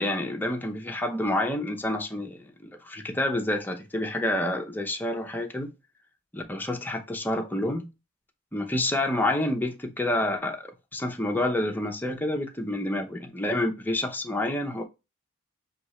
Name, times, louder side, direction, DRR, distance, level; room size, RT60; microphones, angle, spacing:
voice 1, 0.0-5.7 6.3-7.8 8.5-14.8, left 1 dB, 10° left, 0.7 m, -28 dB
6.0 x 2.9 x 3.1 m
head